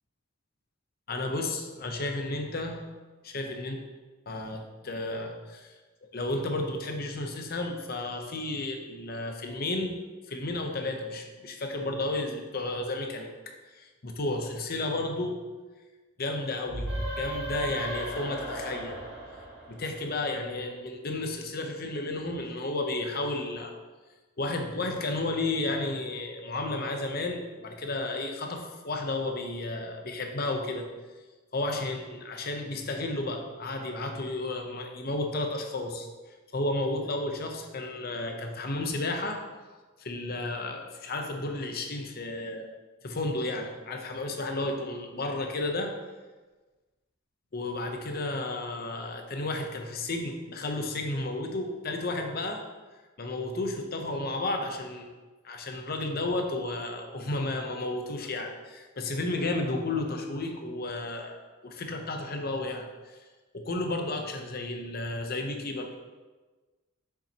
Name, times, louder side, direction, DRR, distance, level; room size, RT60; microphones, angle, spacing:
voice 1, 1.1-2.8 3.2-3.8 4.3-5.7 6.1-13.3 13.7-15.5 16.2-19.0 19.7-23.7 24.4-30.9 31.5-36.1 36.5-39.4 40.0-42.7 43.0-45.9 47.5-52.6 53.2-55.1 55.4-62.9 63.5-65.9, left 2 dB, 45° left, 3 dB, 0.8 m, -32 dB
sound 1, 16.7-20.3, right 1 dB, 55° right, 2.0 m, -35 dB
7.0 x 5.9 x 2.9 m, 1.3 s
head